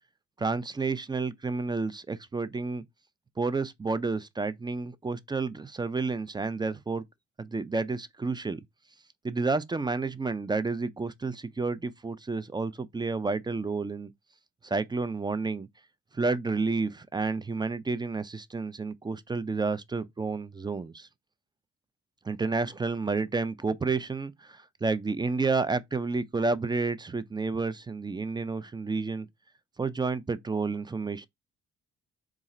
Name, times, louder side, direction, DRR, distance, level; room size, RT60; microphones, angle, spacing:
voice 1, 0.4-2.8 3.4-7.0 7.4-8.6 9.2-14.1 14.6-15.7 16.1-21.1 22.3-29.3 29.8-31.3, right 4 dB, 15° right, 0.3 m, -30 dB
4.1 x 2.4 x 3.7 m
cardioid pair, 90°, 30 cm